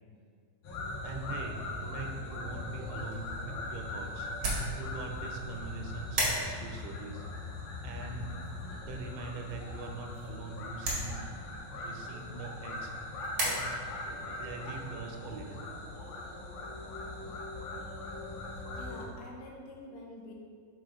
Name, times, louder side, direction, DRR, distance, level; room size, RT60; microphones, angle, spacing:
sound 1, 0.6-19.0, left 2 dB, 65° left, 2.4 m, -40 dB
voice 1, 1.0-4.3 4.8-7.2 7.8-8.3 8.8-11.2 11.8-12.9 13.4-13.7 14.1-15.6, right 4 dB, 90° right, 3 dB, 3.0 m, -43 dB
sound 2, 2.9-13.5, right 1 dB, 65° right, 1.2 m, -39 dB
voice 2, 18.7-20.3, left 2 dB, 85° left, -2 dB, 3.1 m, -47 dB
11.0 x 4.6 x 2.4 m, 2.1 s
omnidirectional pair, 5.1 m